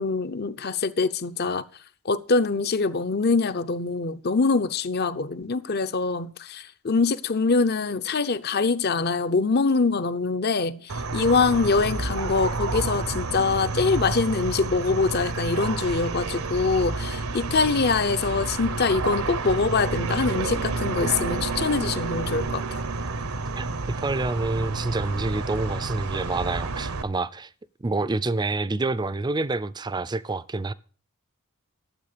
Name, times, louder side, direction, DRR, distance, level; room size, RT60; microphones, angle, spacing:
voice 1, 0.0-1.6 2.0-22.8, left 4 dB, 45° left, 0.7 m, -24 dB
sound 1, 10.9-27.0, right 3 dB, 80° right, 1.0 m, -30 dB
voice 2, 24.0-27.5 27.8-30.7, right 3 dB, 20° right, 0.5 m, -27 dB
12.5 x 7.9 x 6.7 m
head